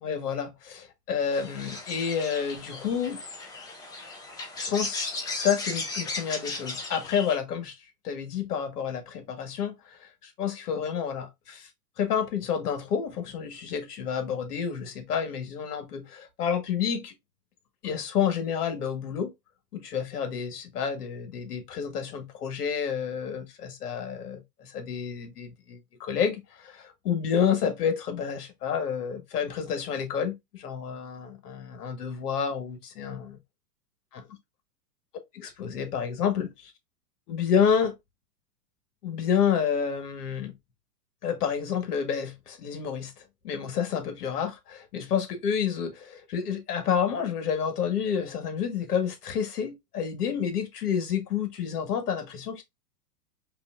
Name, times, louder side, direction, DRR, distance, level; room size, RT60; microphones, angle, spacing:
voice 1, 0.0-3.2 4.6-11.7 12.0-17.1 17.8-19.3 19.7-33.4 34.1-34.2 35.3-36.7 37.3-37.9 39.0-40.5 41.2-52.6, left 7 dB, 70° left, 1.6 m, -29 dB
sound 1, 1.3-7.4, left 3 dB, 10° left, 0.4 m, -36 dB
5.1 x 2.7 x 2.4 m
hypercardioid pair, 125°, 47 cm